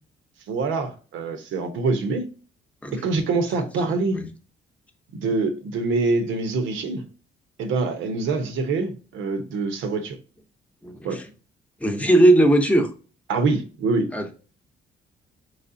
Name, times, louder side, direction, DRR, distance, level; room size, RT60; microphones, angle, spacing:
voice 1, 0.5-2.3 2.9-4.2 5.1-7.0 7.6-10.2 11.0-11.2 13.3-14.1, right 3 dB, 80° right, 0.8 m, -25 dB
voice 2, 10.8-11.2 11.8-12.9 14.1-14.3, right 1 dB, 5° left, 0.8 m, -18 dB
4.2 x 3.2 x 2.6 m
cardioid pair, 90°, 20 cm